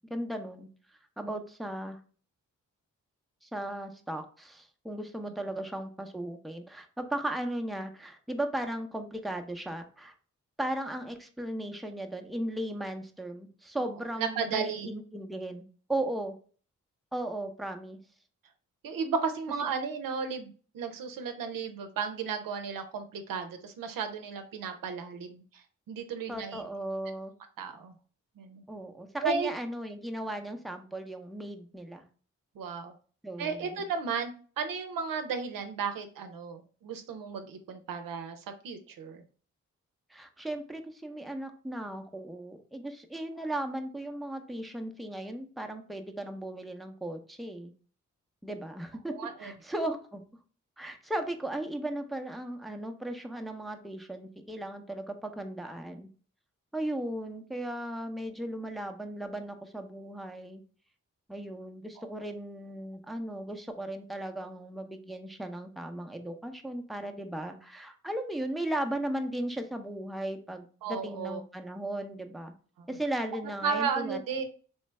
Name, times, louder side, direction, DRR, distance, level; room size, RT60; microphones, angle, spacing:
voice 1, 0.1-0.7 1.2-2.0 3.4-10.1 10.6-16.4 17.1-18.0 26.3-27.3 28.7-32.0 33.2-33.9 40.1-47.7 48.4-50.2 50.8-56.1 56.7-60.6 61.3-72.5 72.9-74.2, right 1 dB, ahead, 5 dB, 0.7 m, -36 dB
voice 2, 14.2-14.9 18.8-26.6 27.6-27.9 28.4-28.6 29.2-29.5 32.6-32.9 33.4-39.2 49.1-49.5 70.8-71.4 72.8-72.9 73.6-74.4, right 5 dB, 80° right, 6 dB, 0.6 m, -34 dB
3.2 x 3.2 x 3.2 m, 0.41 s
supercardioid pair, 45°, 33 cm